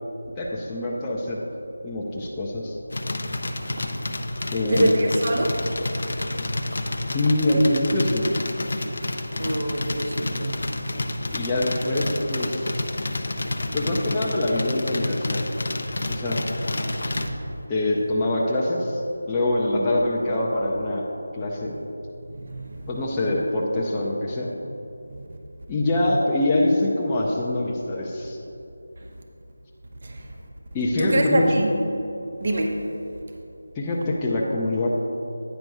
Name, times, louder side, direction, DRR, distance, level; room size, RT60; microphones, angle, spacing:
voice 1, 0.4-1.4 1.8-2.8 4.5-4.9 7.1-8.3 11.3-12.8 13.7-15.4 16.1-16.4 17.7-19.0 19.3-21.1 21.4-21.7 22.9-24.5 25.7-28.4 30.7-31.5 33.8-34.9, left 1 dB, 15° left, -5 dB, 0.6 m, -24 dB
sound 1, 2.9-17.3, left 2 dB, 65° left, 0.6 m, -29 dB
voice 2, 3.5-3.9 4.7-5.6 9.4-10.6 15.9-16.2 17.1-17.4 19.7-20.0 22.4-22.9 25.1-25.2 30.0-30.2 31.0-31.7 32.4-32.8, right 1 dB, 45° right, 2 dB, 0.8 m, -25 dB
9.1 x 5.2 x 4.7 m, 2.9 s
figure-of-eight pair, 170°, 0 cm